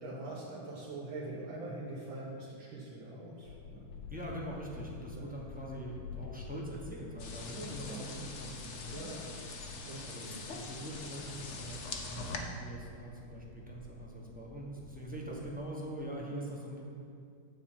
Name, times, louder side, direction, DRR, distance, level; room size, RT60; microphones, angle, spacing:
voice 1, 0.0-3.9 5.1-5.3 7.9-8.1 8.9-9.2 9.8-10.0 15.3-15.4, right 2 dB, 85° right, -6 dB, 1.9 m, -43 dB
sound 1, 3.4-15.6, left 6 dB, 80° left, 1.3 m, -50 dB
voice 2, 4.1-9.4 10.0-11.8 12.1-16.8, right 1 dB, 5° right, -4 dB, 0.8 m, -43 dB
sound 2, 7.2-12.4, left 4 dB, 50° left, 0.9 m, -44 dB
9.7 x 4.1 x 7.3 m, 2.4 s
omnidirectional pair, 2.1 m